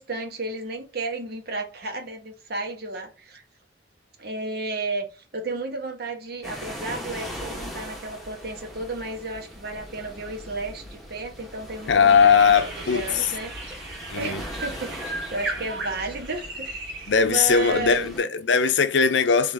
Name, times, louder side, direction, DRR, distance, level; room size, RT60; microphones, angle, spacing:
voice 1, 0.0-3.4 4.2-13.5 14.1-18.1, right 2 dB, 60° right, 1.2 m, -33 dB
sound 1, 6.4-18.2, equal, ahead, 1.1 m, -40 dB
voice 2, 11.9-13.3 14.1-14.4 17.1-19.5, left 6 dB, 80° left, 0.6 m, -19 dB
sound 2, 12.1-17.4 17.7-17.9, right 2 dB, 75° right, 1.8 m, -36 dB
3.9 x 3.4 x 3.5 m
head